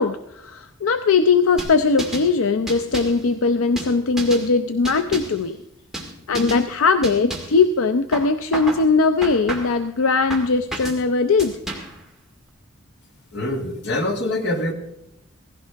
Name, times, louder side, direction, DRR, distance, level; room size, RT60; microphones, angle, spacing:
voice 1, 0.0-5.6 6.3-11.6, left 4 dB, 75° left, 9 dB, 0.5 m, -20 dB
sound 1, 1.6-2.3 2.7-3.2 3.8-4.5 4.8-5.4 5.9-6.1 6.3-6.6 7.0-7.6 8.1-8.8 9.2-9.8 10.3-11.0 11.4-12.0, right 2 dB, ahead, 1.9 m, -31 dB
voice 2, 13.3-14.7, left 1 dB, 55° left, 3 dB, 1.9 m, -24 dB
16.0 x 16.0 x 3.4 m, 0.82 s
head